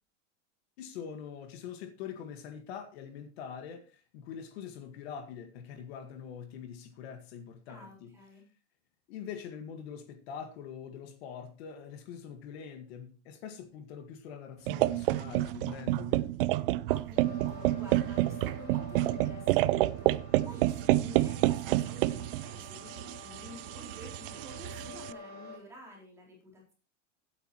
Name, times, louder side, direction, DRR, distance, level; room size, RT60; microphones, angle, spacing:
voice 1, 0.8-8.1 9.1-16.3, left 7 dB, 55° left, 1.8 m, -44 dB
voice 2, 7.7-8.4 16.9-26.7, equal, 5° right, 3.9 m, -50 dB
sound 1, 14.7-25.1, right 17 dB, 50° right, 0.5 m, -29 dB
sound 2, 17.2-25.6, left 2 dB, 25° left, 7.6 m, -48 dB
16.0 x 9.2 x 3.0 m
supercardioid pair, 165°, 36 cm